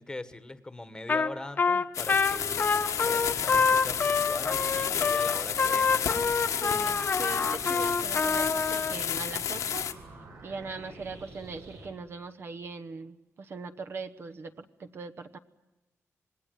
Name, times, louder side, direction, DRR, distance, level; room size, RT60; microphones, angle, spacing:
voice 1, 0.0-2.7 3.0-6.0, left 2 dB, 15° left, 11 dB, 1.3 m, -41 dB
Trumpet, 1.1-1.3 1.6-9.0, left 5 dB, 35° left, 1.0 m, -26 dB
sound 1, 1.9-9.9, left 8 dB, 85° left, 1.6 m, -31 dB
sound 2, 2.1-11.9, right 2 dB, 85° right, 7.3 m, -48 dB
voice 2, 6.5-9.9 10.4-15.4, right 4 dB, 45° right, 7 dB, 1.0 m, -40 dB
27.0 x 20.0 x 9.3 m, 1.1 s
wide cardioid pair, 150°, 5 cm